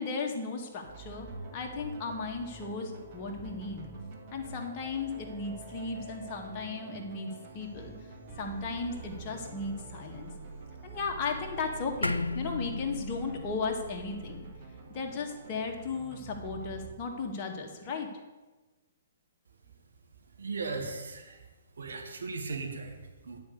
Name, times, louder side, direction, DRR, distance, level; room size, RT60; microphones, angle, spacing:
voice 1, 0.0-3.9 4.3-7.9 8.4-10.3 10.8-14.5 14.9-18.1, left 4 dB, 30° left, 1 dB, 1.8 m, -35 dB
sound 1, 0.8-16.9, right 4 dB, 40° right, 2.6 m, -46 dB
sound 2, 12.0-16.6, left 2 dB, 85° left, 0.4 m, -37 dB
voice 2, 20.4-21.4 21.8-23.4, right 4 dB, 65° right, 1 dB, 2.0 m, -37 dB
10.0 x 5.2 x 8.0 m, 1.2 s
figure-of-eight pair, 120°, 0 cm